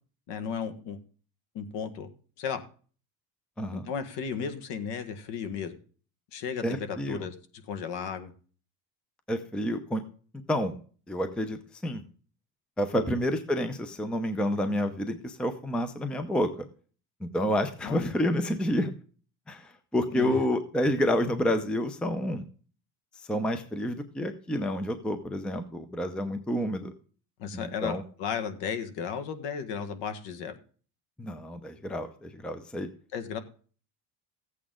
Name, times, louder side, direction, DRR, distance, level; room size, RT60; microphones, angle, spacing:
voice 1, 0.3-1.0 1.5-2.1 2.4-2.6 3.7-5.8 6.3-7.3 7.7-8.3 12.9-13.2 17.8-18.1 20.1-20.3 27.4-30.6 33.1-33.4, left 7 dB, 60° left, 9 dB, 1.6 m, -34 dB
voice 2, 3.6-3.9 6.6-7.3 9.3-10.0 10.5-10.8 11.1-12.0 12.8-16.7 17.2-18.9 19.5-22.4 23.2-26.9 27.5-28.0 31.2-32.9, equal, ahead, 9 dB, 0.6 m, -29 dB
14.5 x 8.4 x 3.7 m, 0.41 s
cardioid pair, 145°, 48 cm